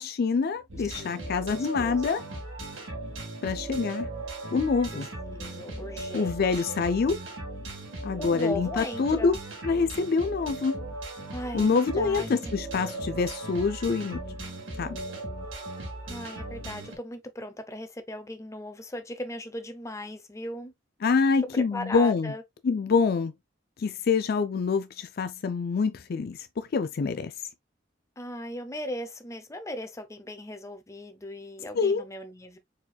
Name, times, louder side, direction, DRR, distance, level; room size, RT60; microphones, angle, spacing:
voice 1, 0.0-2.2 3.4-4.1 4.5-5.1 6.1-7.2 8.0-9.4 9.6-10.8 11.5-14.2 14.8-15.0 21.0-22.3 22.6-23.3 23.8-27.3 31.7-32.0, left 5 dB, 50° left, 0.4 m, -26 dB
sound 1, 0.7-17.0, right 2 dB, 85° right, 1.9 m, -38 dB
voice 2, 0.8-2.3 4.9-5.0 5.3-6.8 8.2-9.3 11.3-12.6 16.1-20.7 21.5-22.4 28.2-32.6, left 1 dB, 15° left, 0.7 m, -38 dB
4.5 x 4.3 x 2.3 m
head